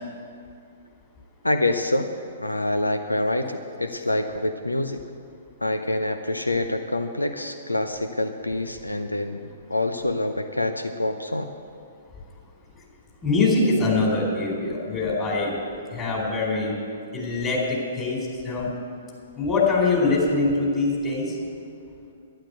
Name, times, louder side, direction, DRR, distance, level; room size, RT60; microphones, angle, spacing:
voice 1, 1.4-2.1 2.4-5.0 5.6-11.5, left 1 dB, 90° left, 8 dB, 0.7 m, -26 dB
voice 2, 13.2-15.5 15.9-16.8 17.1-18.7 19.4-21.3, left 3 dB, 20° left, -3 dB, 4.6 m, -23 dB
11.5 x 11.5 x 8.3 m, 2.4 s
figure-of-eight pair, 115°, 0 cm